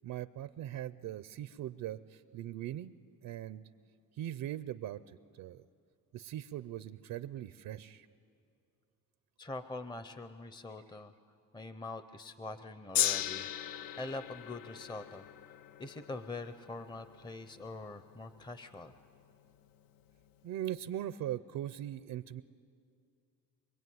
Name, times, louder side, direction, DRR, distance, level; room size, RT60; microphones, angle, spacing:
voice 1, 0.0-3.6 4.2-5.6 6.1-8.1 20.4-22.4, right 12 dB, 70° right, 14 dB, 0.6 m, -40 dB
voice 2, 9.4-11.1 11.5-15.2 15.8-18.9, left 2 dB, 15° left, 10 dB, 0.7 m, -44 dB
Gong, 12.9-19.3 20.1-20.2, left 11 dB, 70° left, 0.8 m, -38 dB
25.0 x 22.0 x 9.5 m, 2.4 s
cardioid pair, 125°, 35 cm